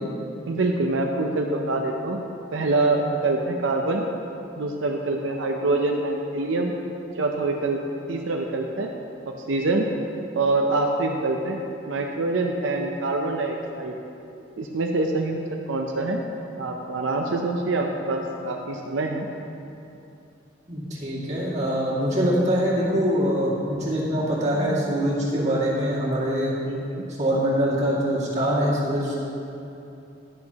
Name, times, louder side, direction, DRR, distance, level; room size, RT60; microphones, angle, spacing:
voice 1, 0.5-2.2 2.5-4.1 4.6-6.7 7.1-7.8 8.1-8.9 9.5-9.9 10.3-11.6 11.9-13.9 14.6-15.4 15.7-16.2 16.6-19.3 26.7-27.1, right 2 dB, 90° right, 2 dB, 0.6 m, -25 dB
voice 2, 20.7-26.5 27.2-29.2, equal, 40° right, -7 dB, 2.2 m, -23 dB
10.5 x 10.5 x 2.9 m, 2.8 s
head